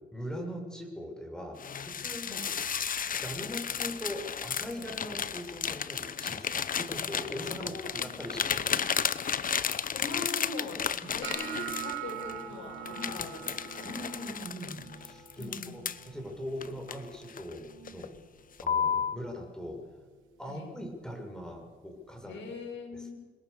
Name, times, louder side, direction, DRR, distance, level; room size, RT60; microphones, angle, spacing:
voice 1, 0.1-2.4 3.1-7.8 8.2-8.9 11.0-11.2 12.9-13.3 13.8-15.8 16.1-18.1 18.6-19.7 20.4-22.4 22.9-23.2, equal, 5° left, 3 dB, 6.8 m, -41 dB
sound 1, 1.6-12.4 12.9-16.1 16.6-17.5 17.9-18.2 18.6-19.2, left 7 dB, 45° left, 1.1 m, -33 dB
voice 2, 7.6-8.1 8.6-8.9 9.9-10.8 11.1-13.4 13.7-13.9 15.4-15.8 20.5-20.7 22.2-23.2, left 4 dB, 70° left, 2 dB, 7.1 m, -41 dB
sound 2, 11.2-17.3 17.6-18.1 18.5-19.0 19.6-19.8 21.6-21.7, right 10 dB, 80° right, 4.4 m, -43 dB
27.5 x 21.5 x 7.0 m, 1.4 s
cardioid pair, 90°, 20 cm